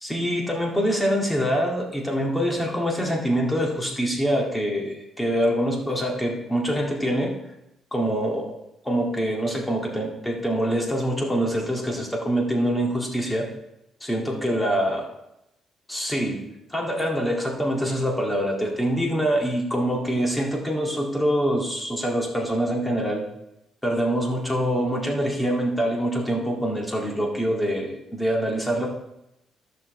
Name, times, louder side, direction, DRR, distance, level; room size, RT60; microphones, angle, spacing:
voice 1, 0.0-7.4 7.9-8.5 8.8-13.5 14.0-15.0 15.9-16.5 16.7-23.3 23.8-28.9, equal, 10° left, -1 dB, 2.0 m, -25 dB
14.0 x 6.3 x 3.2 m, 0.86 s
cardioid pair, 80°, 0 cm